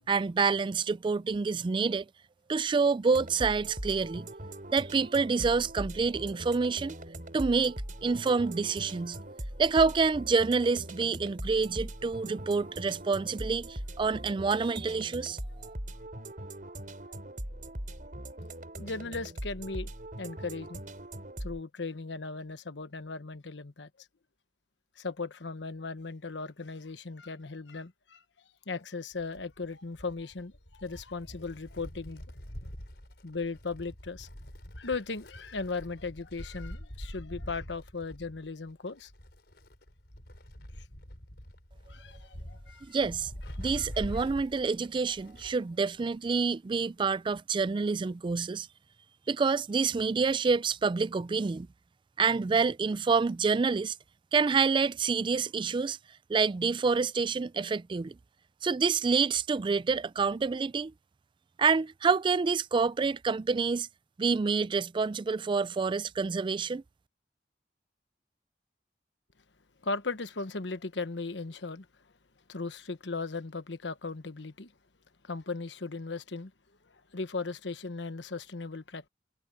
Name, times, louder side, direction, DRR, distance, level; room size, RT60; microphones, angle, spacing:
voice 1, 0.1-2.1 2.5-4.3 4.7-7.0 7.3-9.2 9.6-15.4 42.9-43.3 43.6-48.7 49.3-51.7 52.2-53.9 54.3-56.0 56.3-58.2 58.6-60.9 61.6-63.9 64.2-66.8, right 4 dB, 30° right, 0.3 m, -27 dB
sound 1, 3.1-21.6, right 1 dB, 50° right, 4.9 m, -41 dB
voice 2, 18.7-19.9 20.2-20.8 21.4-23.9 25.0-28.2 28.7-32.2 33.2-34.3 34.8-39.1 41.9-43.0 43.6-43.9 69.8-71.9 72.5-74.7 75.2-76.5 77.1-79.1, left 3 dB, 85° left, 1.2 m, -37 dB
Wind, 29.1-45.7 46.0-46.1 47.1-47.2, equal, 65° left, 5.1 m, -45 dB
head